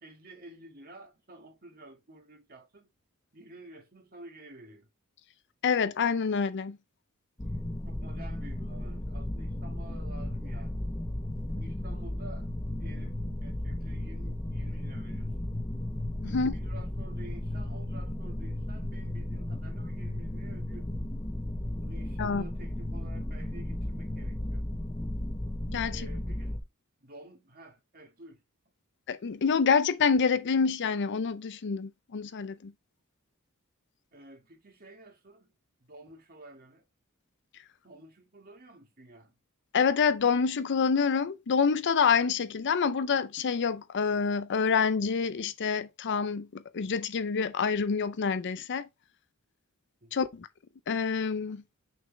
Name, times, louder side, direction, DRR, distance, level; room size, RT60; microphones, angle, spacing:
voice 1, 0.0-2.9 3.3-4.9 7.9-10.8 11.5-12.5 12.8-15.5 16.2-21.1 21.8-24.6 25.9-26.7 27.0-28.4 34.1-35.5 35.8-36.8 37.8-39.4 50.0-50.2, right 1 dB, 40° right, 1.8 m, -51 dB
voice 2, 5.6-6.8 16.2-16.5 22.2-22.4 25.7-26.0 29.1-32.7 39.7-48.9 50.1-50.5 50.9-51.6, left 5 dB, 55° left, 0.5 m, -27 dB
sound 1, 7.4-26.6, left 1 dB, 20° left, 0.8 m, -35 dB
6.3 x 5.3 x 3.3 m
head